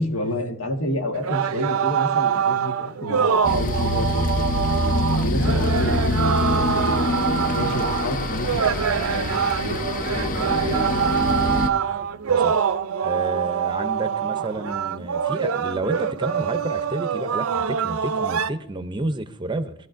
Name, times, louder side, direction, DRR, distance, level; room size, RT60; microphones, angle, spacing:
voice 1, 0.0-4.8 5.1-6.9 7.4-9.3 9.6-9.8 10.1-11.1, left 1 dB, 75° left, 3 dB, 1.5 m, -30 dB
sound 1, 1.1-18.5, right 7 dB, 80° right, 0.5 m, -25 dB
sound 2, 3.4-11.7, left 1 dB, 40° left, 0.6 m, -24 dB
Thunder, 8.1-12.8 13.9-14.0, right 1 dB, 5° left, 0.8 m, -42 dB
voice 2, 13.0-19.7, right 2 dB, 20° right, 9 dB, 0.6 m, -30 dB
19.5 x 12.5 x 2.6 m, 0.72 s
head